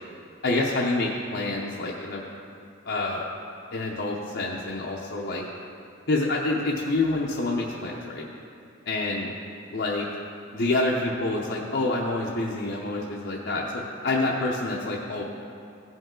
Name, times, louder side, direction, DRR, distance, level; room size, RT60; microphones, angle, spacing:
voice 1, 0.4-2.2 2.9-3.3 3.7-5.4 6.1-8.2 8.9-9.3 9.7-10.1 10.5-15.2, left 2 dB, 55° left, -4 dB, 0.7 m, -27 dB
15.5 x 5.4 x 3.8 m, 2.5 s
head